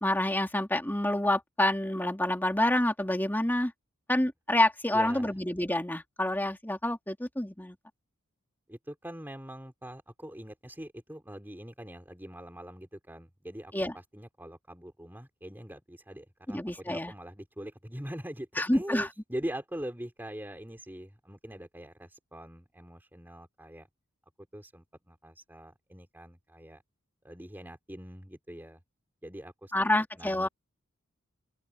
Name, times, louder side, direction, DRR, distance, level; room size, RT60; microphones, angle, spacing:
voice 1, 0.0-3.7 4.1-7.8 13.7-13.9 16.5-17.1 18.6-19.1 29.7-30.5, left 1 dB, 10° left, 2.2 m, -28 dB
voice 2, 4.9-5.3 8.7-23.9 24.5-26.8 27.2-28.8 29.2-29.9 30.2-30.5, equal, 10° right, 3.3 m, -43 dB
open air
head